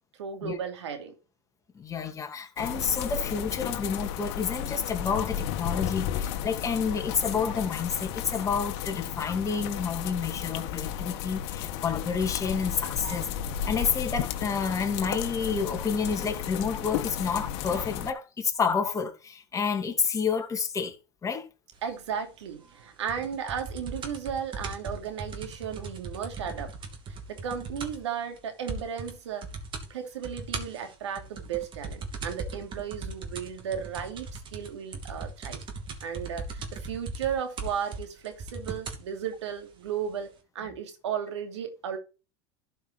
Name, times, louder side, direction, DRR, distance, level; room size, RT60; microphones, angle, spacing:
voice 1, 0.2-1.1 13.0-13.2 21.8-26.7 27.1-29.4 29.9-35.6 36.0-42.0, right 8 dB, 90° right, 2.7 m, -35 dB
voice 2, 1.7-13.3 13.7-21.0 21.2-21.5, left 6 dB, 20° left, 2.4 m, -29 dB
sound 1, 2.6-18.1, left 10 dB, 65° left, 1.6 m, -33 dB
sound 2, 23.1-28.1 28.4-28.5 28.7-29.1 29.4-29.9 30.2-39.1 39.9-40.0, right 3 dB, 35° right, 2.7 m, -38 dB
12.0 x 5.5 x 4.4 m
supercardioid pair, 110°, 14 cm